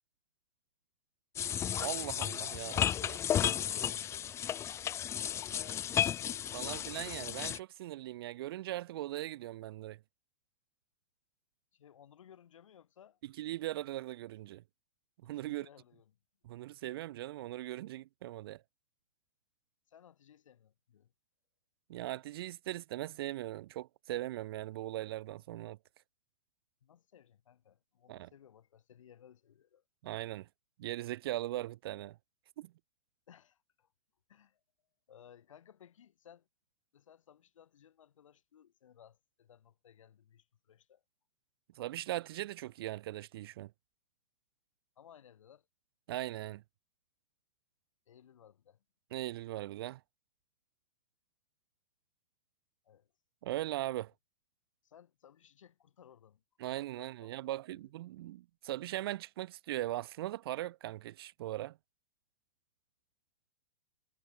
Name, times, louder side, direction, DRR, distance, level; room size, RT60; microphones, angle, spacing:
sound 1, 1.4-7.6, left 10 dB, 15° left, 0.6 m, -33 dB
voice 1, 1.8-3.2 6.5-10.0 13.4-14.6 15.2-15.7 16.4-18.6 21.9-25.8 28.1-28.3 30.0-30.5 30.8-32.2 32.6-32.7 41.8-43.7 46.1-46.6 49.1-50.0 53.4-54.1 56.6-61.8, right 15 dB, 40° right, 0.5 m, -39 dB
voice 2, 5.3-6.8 11.7-13.2 15.2-16.1 19.9-21.1 26.8-29.8 33.3-33.9 34.3-34.6 35.1-36.5 36.9-41.0 45.0-45.7 48.1-48.8 52.8-53.1 54.8-57.6, left 9 dB, 60° left, 8.0 m, -60 dB
figure-of-eight pair, 110°, 19 cm